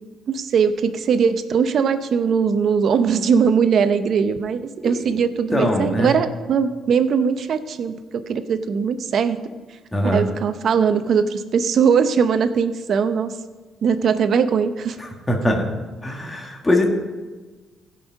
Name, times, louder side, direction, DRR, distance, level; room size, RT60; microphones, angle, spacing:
voice 1, 0.3-7.9 8.3-9.4 10.0-13.3 13.8-15.0, right 6 dB, 60° right, 10 dB, 0.7 m, -20 dB
voice 2, 5.5-6.1 9.9-10.2 15.0-15.6 16.0-16.9, left 1 dB, 20° left, 1 dB, 1.8 m, -21 dB
16.0 x 5.6 x 5.2 m, 1.3 s
cardioid pair, 90°, 0 cm